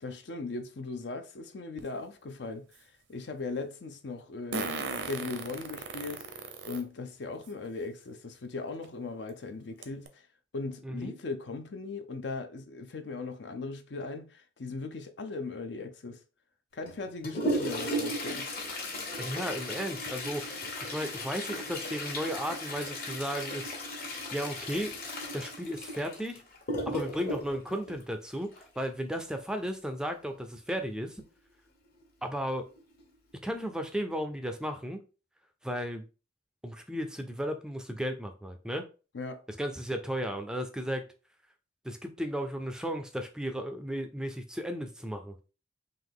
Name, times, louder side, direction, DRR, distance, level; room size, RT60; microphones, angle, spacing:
voice 1, 0.0-2.7 3.1-4.7 5.0-6.3 6.6-10.2 10.5-16.2 16.7-18.5 39.1-39.4, left 3 dB, 70° left, 0.6 m, -38 dB
Fart, 1.8-1.9 4.5-6.8 7.5-7.6 8.8-8.9 9.3-9.4 9.8-10.1, right 3 dB, 75° right, 0.7 m, -36 dB
voice 2, 10.8-11.2 19.2-23.8 24.3-25.0 25.3-26.4 26.9-31.2 32.2-32.7 33.4-35.0 35.6-36.1 36.6-38.8 39.5-41.1 41.8-45.4, equal, 5° right, 0.4 m, -35 dB
Toilet flush, 16.8-28.8 30.7-30.8 31.1-31.2 32.0-32.1 32.8-33.0 33.4-33.6, left 1 dB, 55° left, 1.2 m, -36 dB
3.8 x 2.8 x 3.5 m
head